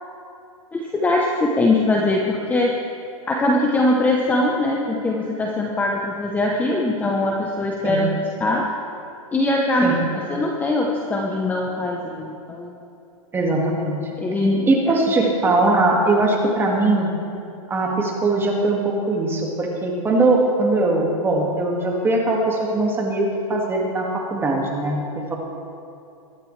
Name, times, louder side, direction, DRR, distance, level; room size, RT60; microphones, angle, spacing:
voice 1, 0.7-2.7 3.3-8.7 9.3-12.8 14.2-14.7, left 2 dB, 10° left, -1 dB, 0.9 m, -21 dB
voice 2, 13.3-14.0 14.6-17.1 17.7-25.4, right 2 dB, 10° right, -1 dB, 2.0 m, -21 dB
22.0 x 11.5 x 3.3 m, 2.7 s
hypercardioid pair, 145°, 18 cm